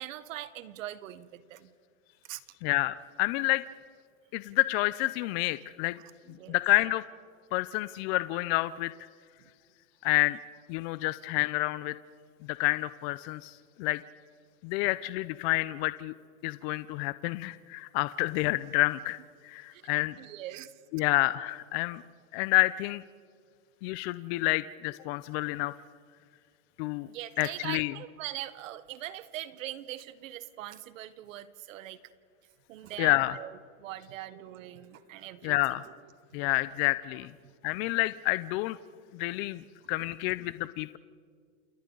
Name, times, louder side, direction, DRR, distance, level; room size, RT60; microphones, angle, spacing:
voice 1, 0.0-1.7 2.3-2.4 6.2-6.6 9.4-9.5 19.7-19.9 20.2-20.7 27.0-32.0 32.7-36.5 37.4-37.5 37.8-38.0 39.3-39.5, right 13 dB, 75° right, 14 dB, 1.4 m, -42 dB
voice 2, 2.6-3.6 4.3-6.0 6.5-7.0 7.5-8.9 10.0-10.4 10.7-11.9 12.5-14.0 14.6-16.1 16.4-19.2 19.4-20.2 20.9-22.0 22.3-23.0 23.8-25.7 26.8-27.1 27.4-27.9 33.0-33.4 35.4-35.8 36.3-37.3 37.6-38.8 39.1-39.6 39.9-41.0, left 20 dB, 50° left, 15 dB, 0.7 m, -29 dB
29.0 x 28.5 x 4.0 m, 2.1 s
supercardioid pair, 125°, 40 cm